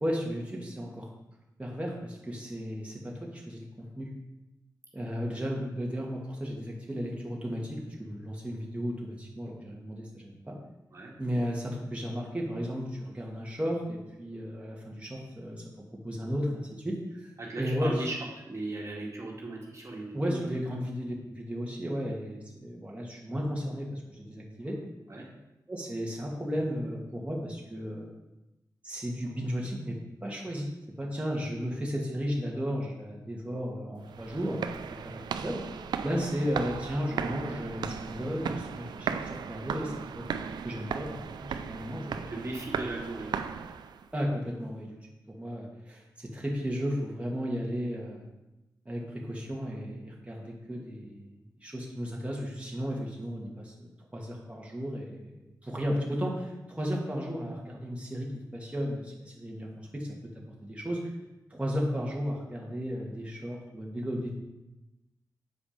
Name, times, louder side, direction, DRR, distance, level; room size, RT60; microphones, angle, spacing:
voice 1, 0.0-1.1 1.6-4.1 4.9-10.6 11.2-15.6 16.0-17.0 17.6-18.0 20.1-24.8 25.7-28.1 28.8-30.7 31.0-34.7 35.0-35.6 36.0-40.2 40.6-42.3 44.1-45.0 45.3-48.2 48.9-60.1 60.6-61.0 61.5-64.3, equal, 15° right, -3 dB, 1.8 m, -34 dB
voice 2, 17.4-20.5 25.1-25.3 42.3-43.5, right 2 dB, 45° right, -3 dB, 1.9 m, -37 dB
sound 1, 34.0-44.1, right 7 dB, 90° right, 0.4 m, -36 dB
6.9 x 4.9 x 5.1 m, 0.98 s
cardioid pair, 55°, 7 cm